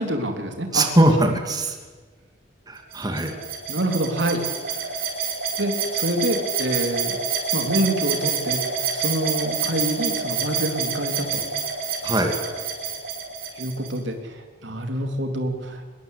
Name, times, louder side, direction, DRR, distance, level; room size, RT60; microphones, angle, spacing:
voice 1, 0.0-0.9 3.7-4.4 4.7-4.8 5.6-7.2 7.5-8.6 8.9-11.5 13.5-15.9, right 1 dB, 75° right, 5 dB, 3.4 m, -26 dB
voice 2, 0.7-1.8 2.7-3.3 12.0-12.3, right 1 dB, 20° right, 4 dB, 2.7 m, -20 dB
sound 1, 2.9-14.0, right 6 dB, 55° right, 5.4 m, -27 dB
25.5 x 21.5 x 8.5 m, 1.4 s
head